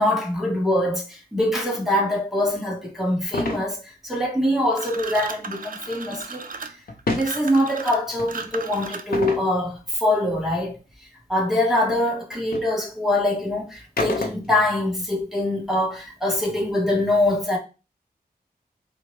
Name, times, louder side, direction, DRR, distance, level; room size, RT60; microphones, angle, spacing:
voice 1, 0.0-6.5 7.1-10.8 11.3-17.6, left 1 dB, ahead, 1.0 m, -23 dB
sound 1, 3.3-3.6 6.9-7.3 8.2-8.3 9.1-9.5 11.8-11.9 12.5-12.7 14.0-14.7, left 3 dB, 65° left, 0.6 m, -27 dB
sound 2, 4.7-9.3, right 4 dB, 55° right, 0.4 m, -35 dB
4.3 x 2.1 x 3.0 m
wide cardioid pair, 75°, 16 cm